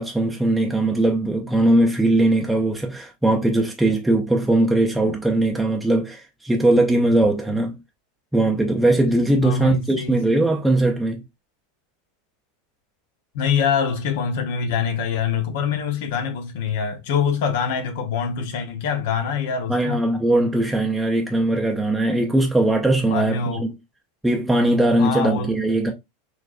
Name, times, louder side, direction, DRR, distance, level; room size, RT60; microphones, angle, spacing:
voice 1, 0.0-7.8 8.3-11.2 19.7-23.7 24.2-25.9, right 1 dB, 5° right, 0.6 m, -20 dB
voice 2, 9.4-10.3 13.3-20.0 23.0-23.7 25.0-25.5, left 6 dB, 70° left, 0.9 m, -24 dB
4.4 x 2.5 x 2.5 m
supercardioid pair, 115°, 0 cm